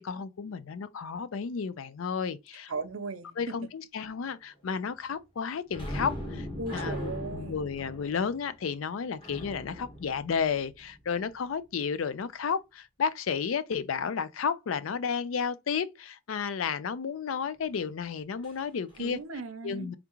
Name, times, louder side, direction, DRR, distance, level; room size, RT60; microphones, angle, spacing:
voice 1, 0.0-2.7 3.4-19.2 19.6-20.0, left 6 dB, 75° left, 0.4 m, -32 dB
voice 2, 2.7-3.6 6.6-7.6 19.0-19.9, right 3 dB, 80° right, 0.6 m, -37 dB
sound 1, 5.7-11.1 18.4-18.6 18.9-19.1, equal, 25° left, 1.3 m, -39 dB
3.6 x 3.6 x 2.9 m
head